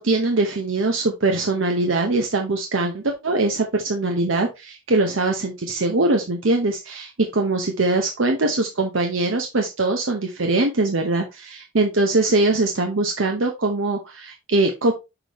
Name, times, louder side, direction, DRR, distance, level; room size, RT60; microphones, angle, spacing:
voice 1, 0.0-14.9, right 2 dB, 75° right, 3 dB, 0.9 m, -22 dB
6.0 x 5.1 x 3.1 m, 0.24 s
head